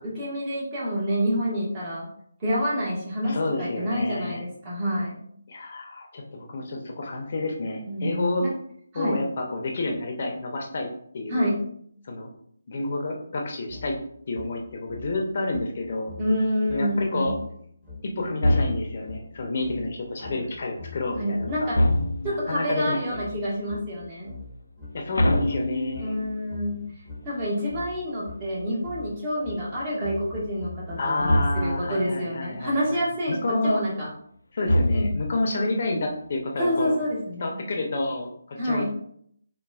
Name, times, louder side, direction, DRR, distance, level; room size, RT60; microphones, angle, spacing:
voice 1, 0.0-2.1 2.4-5.1 7.9-8.5 8.9-9.2 11.3-11.6 16.2-17.4 20.2-20.4 21.2-21.8 22.2-24.3 26.0-26.8 27.2-34.1 34.9-35.1 35.5-35.6 36.6-37.5 38.6-38.8, equal, 25° right, -6 dB, 1.2 m, -28 dB
voice 2, 3.2-4.4 5.5-8.5 8.9-10.9 11.1-11.5 12.0-12.3 12.7-14.0 14.3-16.1 16.7-17.3 18.0-21.7 22.2-23.2 24.9-26.2 31.0-33.0 33.3-33.8 34.5-37.0 37.4-38.8, left 2 dB, 45° left, 1 dB, 0.6 m, -29 dB
sound 1, 13.7-22.4 23.1-31.7, left 3 dB, ahead, 1.0 m, -43 dB
sound 2, 18.4-19.2 21.7-22.5 25.2-26.3 31.3-31.9 34.7-35.5, left 1 dB, 85° left, 0.3 m, -24 dB
4.1 x 2.2 x 2.3 m, 0.65 s
figure-of-eight pair, 160°, 0 cm